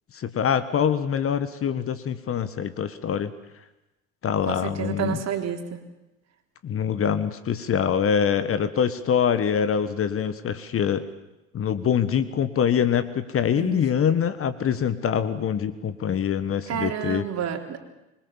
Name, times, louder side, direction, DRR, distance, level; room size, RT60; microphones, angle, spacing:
voice 1, 0.1-3.3 4.2-5.2 6.6-11.0 11.5-17.2, left 8 dB, 35° left, 13 dB, 1.5 m, -24 dB
voice 2, 4.5-5.8 13.5-13.9 16.7-17.8, right 9 dB, 40° right, 5 dB, 3.6 m, -30 dB
25.5 x 22.5 x 7.3 m, 0.99 s
hypercardioid pair, 70°, 39 cm